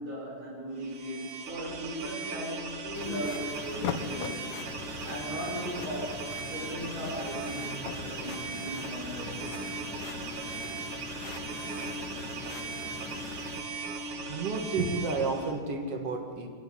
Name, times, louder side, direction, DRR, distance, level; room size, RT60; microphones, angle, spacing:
voice 1, 0.0-9.7, equal, 25° right, -7 dB, 6.6 m, -38 dB
sound 1, 0.8-15.6, right 4 dB, 70° right, 3.1 m, -38 dB
sound 2, 2.1-3.0 3.6-4.5 5.2-5.4 5.7-7.9, left 8 dB, 70° left, 2.3 m, -39 dB
sound 3, 2.9-13.6, left 5 dB, 90° left, 3.0 m, -43 dB
voice 2, 14.1-16.5, right 3 dB, 50° right, 3 dB, 2.7 m, -31 dB
24.5 x 12.0 x 10.0 m, 2.1 s
omnidirectional pair, 3.5 m